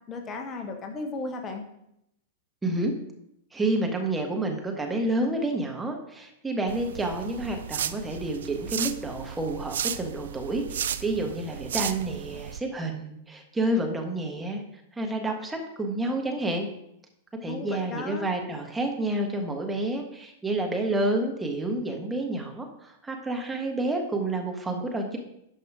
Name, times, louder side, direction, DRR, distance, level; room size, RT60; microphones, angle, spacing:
voice 1, 0.1-1.6 17.5-18.3, left 3 dB, 25° left, 4 dB, 1.4 m, -35 dB
voice 2, 2.6-2.9 3.5-14.6 14.9-16.7 17.4-25.2, right 2 dB, 10° right, 2 dB, 1.5 m, -29 dB
sound 1, 6.7-12.6, right 9 dB, 65° right, 0.5 m, -34 dB
11.5 x 5.4 x 4.9 m, 0.79 s
figure-of-eight pair, 95°, 0 cm